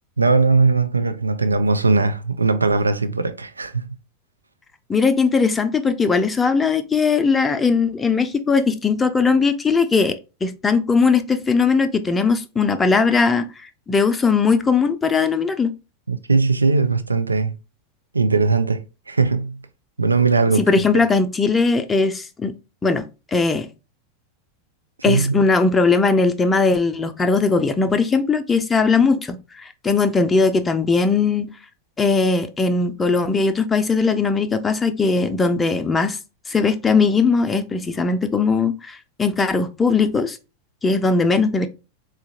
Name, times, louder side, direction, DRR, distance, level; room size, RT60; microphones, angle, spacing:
voice 1, 0.2-4.0 16.1-17.6 18.1-18.8 19.1-19.6 20.0-20.7 25.1-25.5, right 3 dB, 85° right, 0.3 m, -19 dB
voice 2, 4.9-13.5 13.9-15.7 20.6-22.5 22.8-23.0 23.3-23.7 25.0-31.5 32.0-36.2 36.5-40.4 40.8-41.7, left 4 dB, 15° left, 0.5 m, -19 dB
4.3 x 2.4 x 2.8 m
figure-of-eight pair, 90°, 0 cm